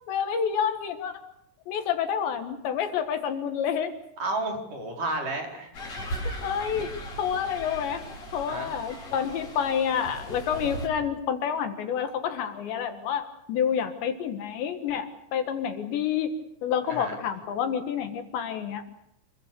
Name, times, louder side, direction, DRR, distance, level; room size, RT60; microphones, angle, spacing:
voice 1, 0.1-1.1 1.7-3.9 6.4-6.9 7.2-8.0 8.3-16.3 16.6-18.8, left 8 dB, 70° left, 7 dB, 3.6 m, -28 dB
voice 2, 4.2-5.7 8.5-8.7 16.9-17.1, right 2 dB, 40° right, 2 dB, 5.8 m, -31 dB
sound 1, 5.7-10.9, equal, 35° left, 6.4 m, -38 dB
28.0 x 23.0 x 6.8 m, 0.77 s
omnidirectional pair, 5.7 m